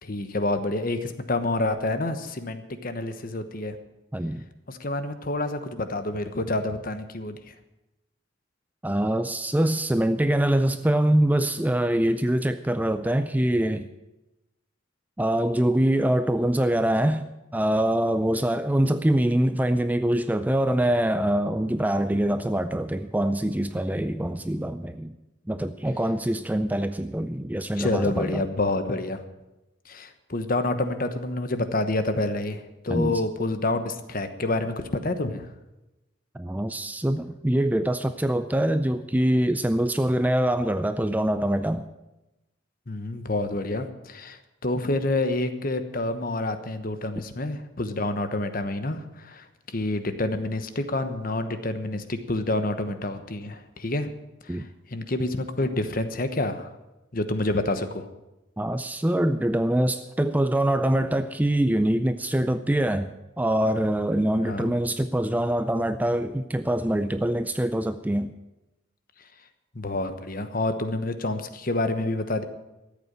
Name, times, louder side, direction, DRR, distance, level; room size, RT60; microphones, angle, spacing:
voice 1, 0.0-3.8 4.7-7.4 27.8-29.2 29.9-35.5 42.9-54.1 54.5-54.6 54.9-56.7 57.1-58.1 64.4-64.7 69.7-72.4, left 2 dB, 45° left, 9 dB, 1.1 m, -28 dB
voice 2, 4.1-4.5 8.8-13.9 15.2-25.2 25.5-28.4 32.9-33.2 36.3-41.8 54.5-54.7 58.6-68.3, right 1 dB, 10° right, 10 dB, 0.4 m, -24 dB
13.5 x 8.4 x 8.8 m, 0.98 s
head